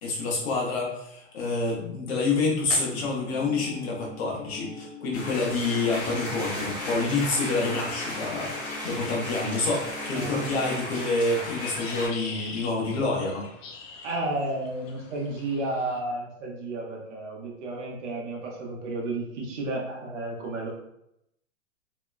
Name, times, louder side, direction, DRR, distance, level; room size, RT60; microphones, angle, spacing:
voice 1, 0.0-13.5, left 3 dB, 50° left, -3 dB, 1.0 m, -28 dB
sound 1, 3.2-10.8, left 2 dB, 5° right, 0.3 m, -43 dB
sound 2, 5.1-12.1, left 1 dB, 20° left, 0.9 m, -35 dB
sound 3, 8.2-16.0, left 4 dB, 65° left, 0.6 m, -45 dB
voice 2, 14.0-20.7, right 2 dB, 60° right, -1 dB, 0.8 m, -32 dB
2.8 x 2.1 x 2.3 m, 0.80 s
hypercardioid pair, 150°, 40 cm